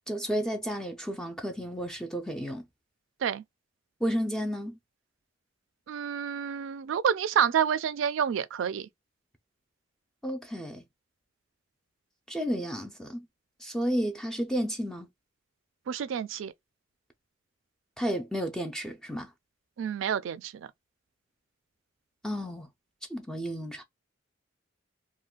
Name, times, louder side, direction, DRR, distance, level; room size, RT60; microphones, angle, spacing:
voice 1, 0.1-2.6 4.0-4.8 10.2-10.8 12.3-13.3 13.6-15.1 18.0-19.3 22.2-22.7 23.1-23.8, equal, 5° left, 0.4 m, -32 dB
voice 2, 5.9-8.9 15.9-16.5 19.8-20.5, right 8 dB, 70° right, 0.3 m, -28 dB
2.5 x 2.2 x 3.6 m
head